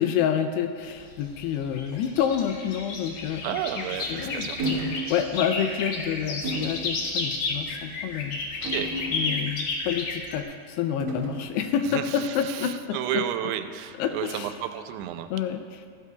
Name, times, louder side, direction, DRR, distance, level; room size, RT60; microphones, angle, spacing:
voice 1, 0.0-3.8 4.1-8.7 9.1-13.2 14.0-14.6 15.3-15.9, left 8 dB, 85° left, 7 dB, 2.5 m, -28 dB
sound 1, 0.8-10.4, left 3 dB, 65° left, 2.1 m, -32 dB
voice 2, 3.4-4.6 8.6-8.9 11.8-15.3, right 11 dB, 90° right, 8 dB, 2.9 m, -32 dB
sound 2, 3.9-5.0, right 1 dB, 25° right, 3.3 m, -47 dB
sound 3, 4.6-5.0 5.5-5.7 6.4-6.8 7.6-7.9 8.6-9.6 11.0-11.5, right 1 dB, 60° right, 1.3 m, -32 dB
15.5 x 15.0 x 2.3 m, 2.1 s
omnidirectional pair, 5.1 m